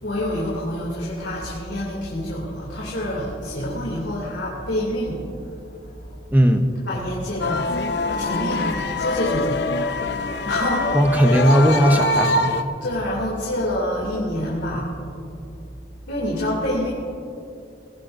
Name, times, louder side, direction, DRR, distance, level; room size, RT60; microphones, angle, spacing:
voice 1, 0.0-6.2 6.9-7.8 8.0-9.7 10.4-11.4 12.8-14.9 16.1-16.9, left 1 dB, 85° left, -5 dB, 2.9 m, -27 dB
voice 2, 6.3-6.7 10.9-12.6, equal, 10° right, 5 dB, 0.8 m, -17 dB
sound 1, 7.4-12.6, left 2 dB, 70° left, 0.8 m, -24 dB
21.5 x 16.5 x 2.7 m, 2.5 s
head